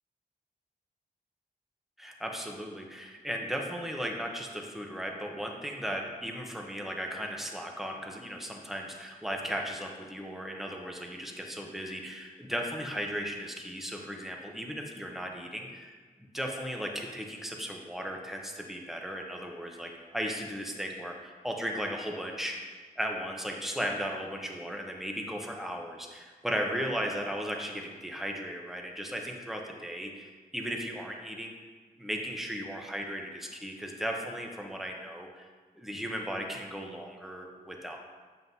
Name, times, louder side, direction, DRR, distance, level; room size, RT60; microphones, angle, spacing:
voice 1, 2.0-15.9 16.3-31.5 32.0-35.5 35.8-38.0, equal, ahead, 1 dB, 0.8 m, -36 dB
7.5 x 7.4 x 2.7 m, 1.5 s
wide cardioid pair, 140°, 16 cm